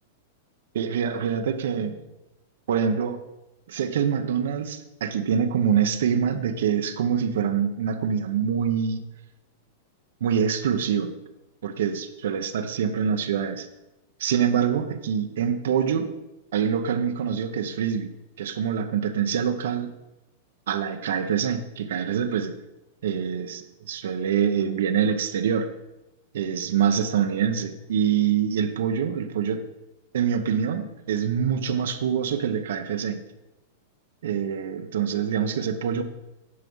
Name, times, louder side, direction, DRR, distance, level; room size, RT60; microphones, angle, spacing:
voice 1, 0.7-2.0 2.7-3.2 3.7-9.0 10.2-11.2 11.6-13.7 14.2-16.1 16.5-19.9 20.7-22.5 23.0-25.7 26.3-29.6 30.1-33.2 34.2-36.0, right 8 dB, 75° right, 8 dB, 0.8 m, -25 dB
9.7 x 5.9 x 5.4 m, 0.95 s
supercardioid pair, 170°, 0 cm